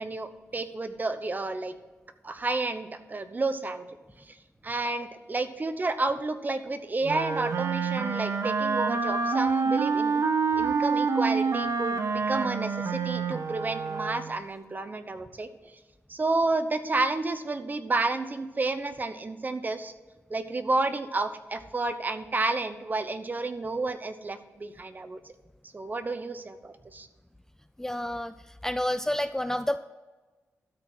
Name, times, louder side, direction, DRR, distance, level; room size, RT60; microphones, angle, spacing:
voice 1, 0.0-1.7 2.2-4.0 4.3-4.4 4.6-15.5 16.1-19.9 20.3-25.2 25.7-27.1, right 3 dB, 35° right, 10 dB, 0.9 m, -31 dB
Wind instrument woodwind instrument, 7.0-14.4, right 5 dB, 70° right, 0.9 m, -27 dB
voice 2, 27.8-28.3 28.6-29.8, left 1 dB, 10° left, 11 dB, 0.4 m, -29 dB
13.0 x 4.5 x 7.8 m, 1.2 s
cardioid pair, 80°, 5 cm